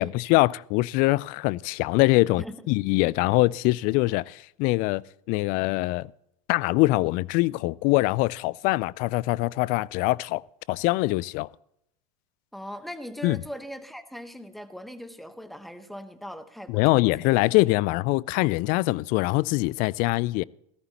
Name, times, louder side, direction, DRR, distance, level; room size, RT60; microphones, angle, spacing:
voice 1, 0.0-6.1 6.5-10.4 10.7-11.5 13.2-13.4 16.7-20.4, left 21 dB, 50° left, 0.4 m, -23 dB
voice 2, 12.5-17.3, equal, ahead, 1.1 m, -40 dB
17.0 x 14.5 x 2.9 m
hypercardioid pair, 100°, 19 cm